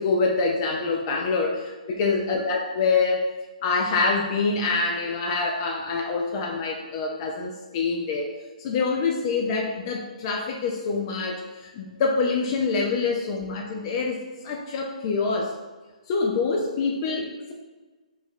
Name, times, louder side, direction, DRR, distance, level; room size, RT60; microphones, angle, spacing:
voice 1, 0.0-3.2 3.6-8.3 8.6-15.5 16.1-17.5, left 4 dB, 40° left, 1 dB, 0.4 m, -25 dB
3.0 x 2.3 x 4.3 m, 1.3 s
hypercardioid pair, 135°, 4 cm